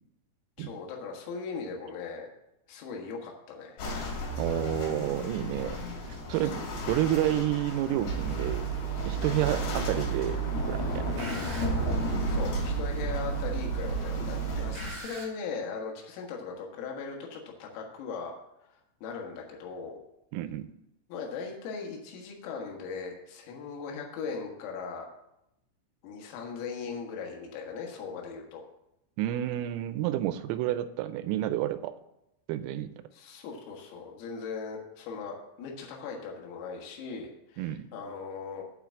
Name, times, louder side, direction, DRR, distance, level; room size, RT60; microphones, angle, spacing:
voice 1, 0.6-2.3 2.7-3.8 6.3-6.5 12.3-18.3 18.6-18.7 19.0-20.0 21.1-25.1 26.0-28.6 33.1-38.7, left 5 dB, 80° left, 0 dB, 4.3 m, -39 dB
sound 1, 3.8-15.0, left 1 dB, 65° left, 4.4 m, -34 dB
voice 2, 4.4-5.8 6.1-8.7 9.1-10.4 10.6-11.5 20.3-20.7 29.2-32.0 32.5-32.9 37.6-37.9, right 13 dB, 85° right, 12 dB, 3.2 m, -30 dB
sound 2, 8.1-15.2, right 12 dB, 45° right, 3.3 m, -34 dB
8.5 x 5.9 x 7.5 m, 0.84 s
omnidirectional pair, 6.0 m